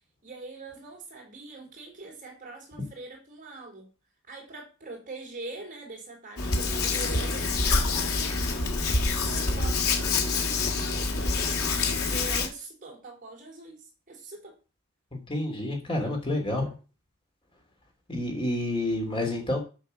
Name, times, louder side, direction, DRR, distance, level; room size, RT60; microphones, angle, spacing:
voice 1, 0.2-3.9 4.3-8.8 9.2-14.6, right 3 dB, 35° right, 3.8 m, -43 dB
Hands, 6.4-12.5, left 3 dB, 75° left, 2.1 m, -26 dB
voice 2, 15.1-16.7 18.1-19.6, left 1 dB, 25° left, 2.8 m, -29 dB
7.8 x 6.3 x 6.6 m
head